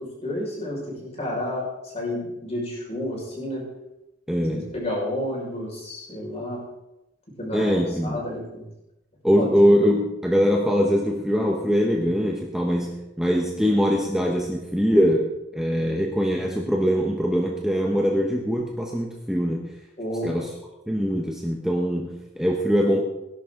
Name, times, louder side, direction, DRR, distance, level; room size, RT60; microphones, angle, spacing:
voice 1, 0.0-3.6 4.4-6.6 7.4-8.7 9.3-9.5 20.0-20.4, left 1 dB, 35° left, -3 dB, 5.6 m, -31 dB
voice 2, 4.3-4.7 7.5-8.2 9.2-19.6 20.2-20.5 20.9-23.0, equal, 5° right, -1 dB, 1.1 m, -22 dB
17.5 x 11.0 x 3.9 m, 0.92 s
head